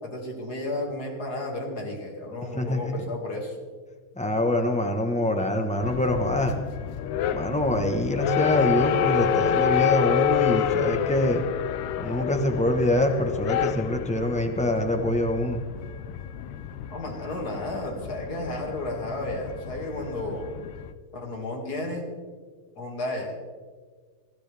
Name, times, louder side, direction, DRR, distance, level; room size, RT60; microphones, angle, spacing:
voice 1, 0.0-3.6 16.9-20.5 21.1-22.1 22.8-23.4, left 1 dB, 45° left, 1 dB, 2.8 m, -33 dB
voice 2, 2.5-3.0 4.2-6.6 7.3-11.4 12.0-15.6, left 1 dB, 10° left, 4 dB, 0.5 m, -25 dB
sound 1, 5.8-20.9, left 9 dB, 85° left, 1.6 m, -28 dB
20.0 x 13.5 x 3.5 m, 1.5 s
omnidirectional pair, 2.4 m